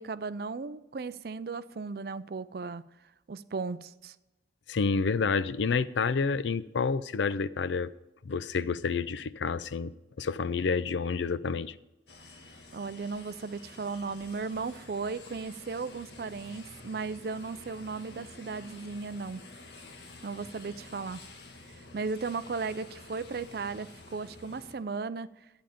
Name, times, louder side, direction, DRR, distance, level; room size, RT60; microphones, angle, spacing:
voice 1, 0.0-2.8 3.3-4.2 12.7-19.4 20.2-21.2 21.7-25.3, right 4 dB, 55° right, 0.4 m, -36 dB
voice 2, 4.7-7.9 8.3-9.9 10.2-11.7, left 5 dB, 85° left, 0.5 m, -29 dB
sound 1, 12.1-24.7, left 2 dB, 65° left, 1.5 m, -50 dB
11.5 x 9.0 x 5.0 m
head